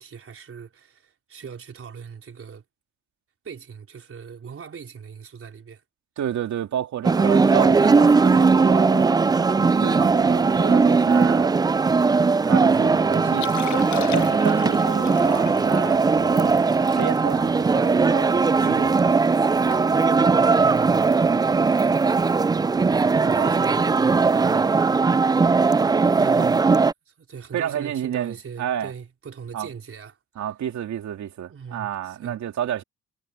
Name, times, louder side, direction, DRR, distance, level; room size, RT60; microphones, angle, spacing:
voice 1, 0.0-2.6 3.4-5.8 20.6-21.1 23.2-24.8 26.1-26.7 27.1-30.2 31.5-32.4, right 6 dB, 45° right, 4.1 m, -40 dB
voice 2, 6.2-11.6 12.4-16.6 16.9-19.3 23.2-23.5 26.4-26.5 27.5-28.9 29.5-29.7 30.4-32.8, right 10 dB, 65° right, 2.5 m, -31 dB
sound 1, 7.0-26.9, right 4 dB, 15° right, 0.3 m, -19 dB
Liquid, 13.3-18.7 19.1-19.2 19.5-19.8 20.1-20.3 20.9-21.1 22.6-22.7, left 12 dB, 75° left, 1.4 m, -37 dB
cardioid pair, 90°, 30 cm